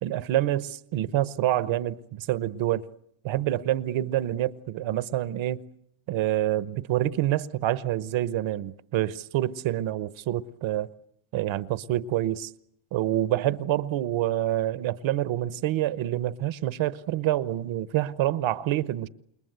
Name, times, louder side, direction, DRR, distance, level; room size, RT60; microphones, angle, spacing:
voice 1, 0.0-2.8 3.2-5.6 6.1-10.9 11.3-12.5 12.9-19.1, right 13 dB, 65° right, 1.1 m, -27 dB
28.5 x 21.5 x 8.0 m
cardioid pair, 135°, 50 cm